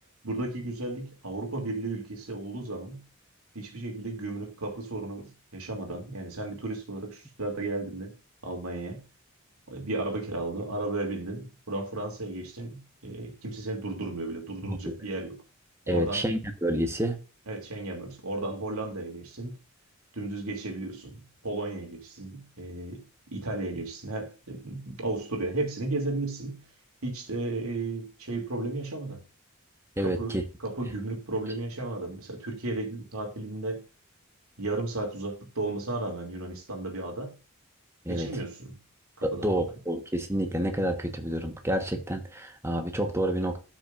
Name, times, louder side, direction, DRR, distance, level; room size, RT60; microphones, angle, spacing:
voice 1, 0.2-3.0 3.5-8.1 8.4-9.0 9.7-15.4 15.9-16.3 17.5-19.6 20.1-23.0 23.3-26.7 27.0-29.2 30.0-30.3 30.6-33.8 34.6-37.3 38.1-38.7 39.2-39.7, right 2 dB, 90° right, 2.7 m, -34 dB
voice 2, 14.6-14.9 15.9-17.2 30.0-30.4 38.0-38.3 39.2-43.6, right 1 dB, 10° right, 1.2 m, -29 dB
13.0 x 6.1 x 2.5 m
head